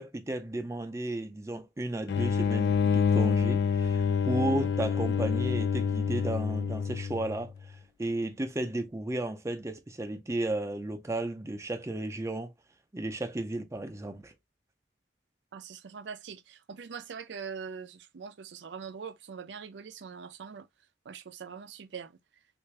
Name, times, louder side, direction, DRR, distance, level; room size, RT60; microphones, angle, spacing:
voice 1, 0.0-7.5 8.0-12.5 12.9-14.3, right 1 dB, 15° right, 0.5 m, -33 dB
sound 1, 2.1-7.5, left 6 dB, 70° left, 0.3 m, -27 dB
voice 2, 15.5-20.7 21.1-22.1, right 6 dB, 75° right, 0.4 m, -43 dB
3.3 x 2.5 x 3.2 m
head